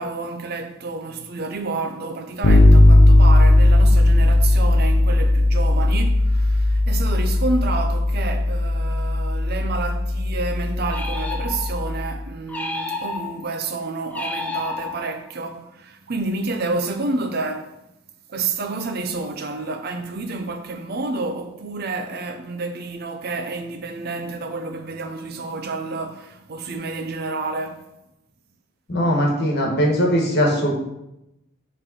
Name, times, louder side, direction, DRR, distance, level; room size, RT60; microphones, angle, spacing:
voice 1, 0.0-17.8 18.3-27.9, right 3 dB, 50° right, 0.6 m, -29 dB
Bass guitar, 2.4-12.1, left 1 dB, 80° left, 0.9 m, -17 dB
sound 1, 10.9-11.9 12.5-13.5 14.1-15.3, left 2 dB, 10° left, 0.6 m, -31 dB
voice 2, 28.9-30.7, equal, 55° left, 1.4 m, -20 dB
5.2 x 3.3 x 5.4 m
head